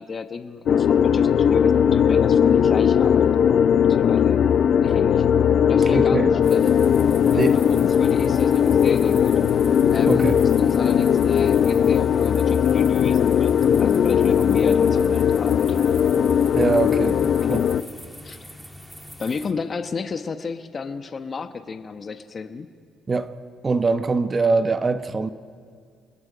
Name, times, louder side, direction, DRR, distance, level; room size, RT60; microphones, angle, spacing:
voice 1, 0.0-4.5 4.8-5.3 5.6-6.6 7.3-9.4 9.9-15.8 18.2-18.6 19.2-22.7, left 5 dB, 45° left, 1.1 m, -32 dB
sound 1, 0.7-17.8, left 8 dB, 65° left, 0.6 m, -18 dB
voice 2, 5.8-6.3 7.3-7.6 10.1-10.4 16.5-17.2 17.5-17.7 23.1-23.3 23.6-25.3, right 4 dB, 35° right, 1.0 m, -22 dB
sound 2, 6.4-19.5, equal, 5° right, 2.5 m, -43 dB
30.0 x 20.5 x 5.2 m
supercardioid pair, 60°, 0 cm